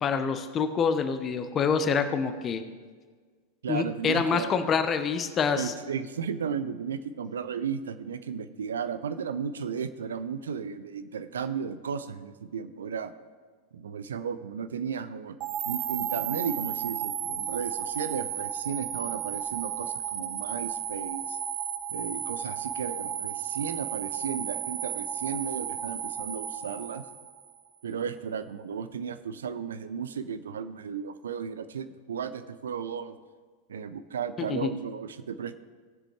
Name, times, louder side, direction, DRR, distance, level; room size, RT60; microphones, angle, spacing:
voice 1, 0.0-2.6 3.7-5.7 34.5-34.7, left 6 dB, 25° left, 9 dB, 0.8 m, -26 dB
voice 2, 3.6-4.5 5.6-13.1 13.7-15.4 15.7-21.4 21.9-27.0 27.8-33.1 33.7-35.6, right 7 dB, 65° right, 12 dB, 0.5 m, -34 dB
sound 1, 15.4-27.6, right 10 dB, 40° right, 0.8 m, -34 dB
18.0 x 7.5 x 3.3 m, 1.5 s
figure-of-eight pair, 90°, 0 cm